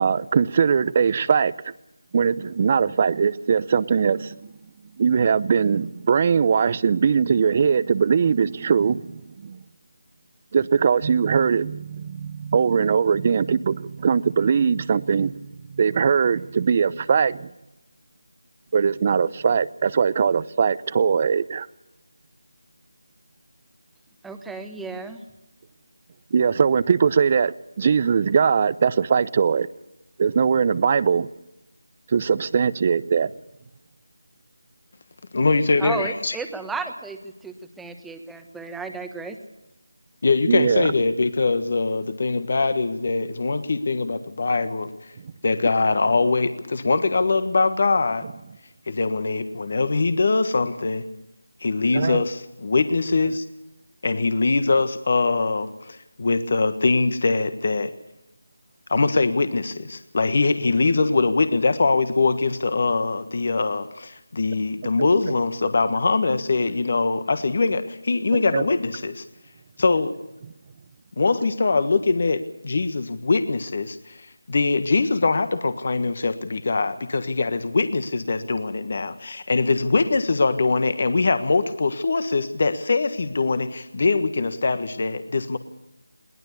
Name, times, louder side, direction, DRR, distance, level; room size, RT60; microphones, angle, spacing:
voice 1, 0.0-1.5 2.1-4.5 5.0-9.6 10.5-15.3 15.7-17.5 18.7-21.7 26.3-29.7 30.2-31.3 32.1-33.3 40.5-40.9 51.9-52.2 65.0-65.1 68.3-68.6, right 6 dB, 30° right, 0.7 m, -21 dB
voice 2, 24.2-25.2 35.8-37.2 37.4-39.4, right 4 dB, 5° right, 1.3 m, -33 dB
voice 3, 35.3-36.4 40.2-44.9 45.4-48.2 48.9-51.0 51.6-53.4 54.0-57.9 58.9-69.2 69.8-70.1 71.2-85.6, left 3 dB, 45° left, 1.5 m, -22 dB
22.0 x 19.0 x 6.9 m
figure-of-eight pair, 165°, 0 cm